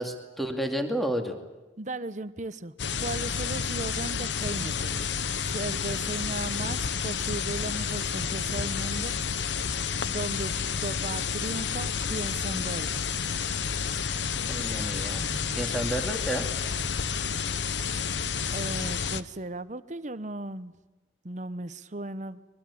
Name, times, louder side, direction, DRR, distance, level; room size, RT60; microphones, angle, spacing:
voice 1, 0.0-1.4 14.5-15.2 15.5-16.5, right 1 dB, ahead, 4 dB, 2.3 m, -31 dB
voice 2, 1.8-5.0 5.4-9.1 9.5-9.7 10.0-13.1 15.1-15.7 18.5-20.7 21.2-22.4, right 2 dB, 40° right, 13 dB, 1.0 m, -36 dB
sound 1, 2.8-19.2, left 6 dB, 65° left, 0.9 m, -30 dB
23.5 x 23.0 x 8.5 m, 1.1 s
head